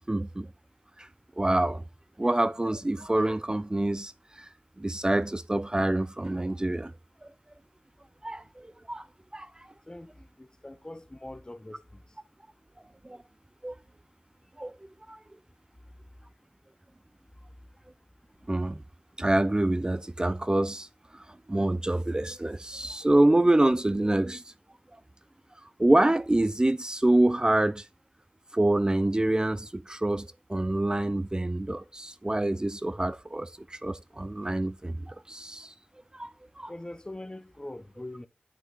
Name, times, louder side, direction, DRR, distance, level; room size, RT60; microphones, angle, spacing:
voice 1, 0.1-0.5 1.0-1.1 1.4-1.8 2.2-4.5 4.8-6.9 7.2-7.3 8.2-9.0 9.3-9.5 13.0-13.2 13.6-13.7 14.6-14.7 15.1-15.2 18.5-18.8 19.2-20.9 21.1-21.2 21.5-24.4 25.8-27.8 28.5-35.7 36.1-36.7, right 1 dB, 25° right, 0.4 m, -26 dB
voice 2, 10.4-12.0 36.7-38.3, left 1 dB, 25° left, 1.0 m, -42 dB
8.4 x 5.9 x 3.8 m
wide cardioid pair, 70°, 3 cm